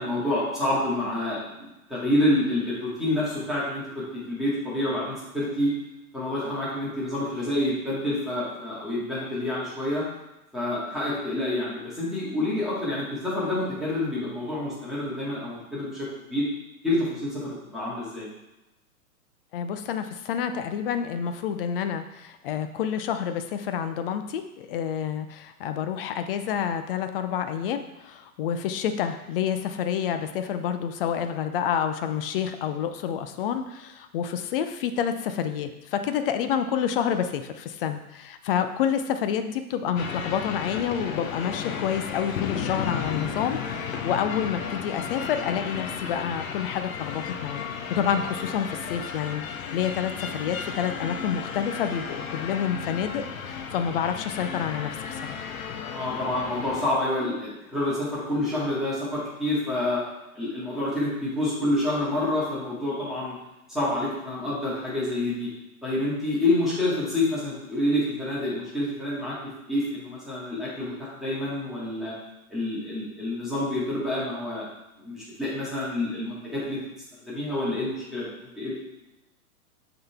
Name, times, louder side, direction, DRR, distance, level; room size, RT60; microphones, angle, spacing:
voice 1, 0.0-5.7 6.1-10.0 10.5-16.5 16.8-18.3 55.9-60.0 60.3-63.3 63.7-65.5 65.8-69.4 69.7-72.1 72.5-74.7 75.0-76.8 77.3-78.8, left 1 dB, ahead, -10 dB, 2.1 m, -28 dB
voice 2, 19.5-55.4, left 8 dB, 40° left, 8 dB, 0.5 m, -28 dB
sound 1, 40.0-56.9, left 6 dB, 65° left, 0.9 m, -34 dB
7.6 x 3.9 x 3.5 m, 0.96 s
hypercardioid pair, 130°, 44 cm